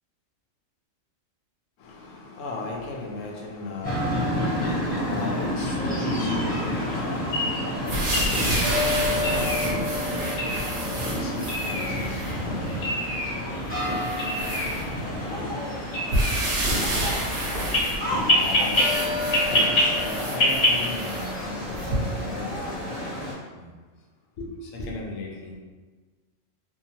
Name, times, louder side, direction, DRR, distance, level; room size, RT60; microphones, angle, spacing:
voice 1, 1.8-12.5 13.3-15.3 15.9-17.2 18.1-22.7 23.5-23.7 24.4-25.5, left 2 dB, 80° left, -1 dB, 0.9 m, -37 dB
sound 1, 3.8-23.3, left 1 dB, 10° left, 0.7 m, -30 dB
sound 2, 5.5-20.8, left 1 dB, 55° left, 0.6 m, -28 dB
sound 3, 7.9-12.4 13.0-13.1 13.7-15.3 16.1-22.3 22.9-23.0, right 1 dB, 55° right, 0.7 m, -30 dB
2.8 x 2.0 x 2.7 m, 1.3 s
omnidirectional pair, 1.3 m